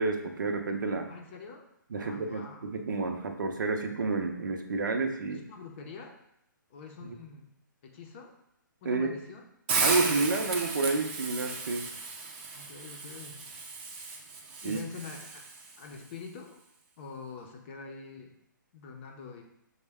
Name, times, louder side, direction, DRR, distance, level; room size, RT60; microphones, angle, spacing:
voice 1, 0.0-1.1 1.9-5.4 8.9-9.2 9.8-11.9 14.6-14.8, right 3 dB, 70° right, 5 dB, 0.6 m, -30 dB
voice 2, 1.1-1.7 1.9-2.7 5.3-6.2 6.7-7.5 7.8-8.3 8.8-9.4 12.5-13.4 14.6-15.3 15.8-16.6 17.0-18.4 18.7-19.4, left 5 dB, 35° left, 2 dB, 0.6 m, -45 dB
Hiss, 9.7-15.8, right 4 dB, 30° right, 0.6 m, -34 dB
6.3 x 2.2 x 3.4 m, 0.78 s
hypercardioid pair, 150°, 11 cm